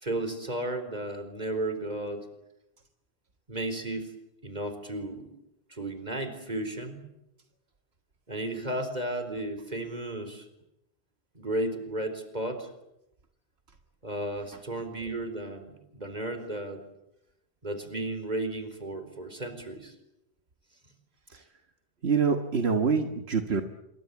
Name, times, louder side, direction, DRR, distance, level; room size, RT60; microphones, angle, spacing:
voice 1, 0.0-2.3 3.5-4.1 4.4-5.3 5.7-7.1 8.3-10.5 11.3-12.7 14.0-16.8 17.6-19.9, right 1 dB, 40° right, 9 dB, 4.4 m, -34 dB
voice 2, 22.0-23.6, right 5 dB, 80° right, 6 dB, 1.8 m, -25 dB
27.0 x 23.5 x 8.3 m, 0.85 s
omnidirectional pair, 1.1 m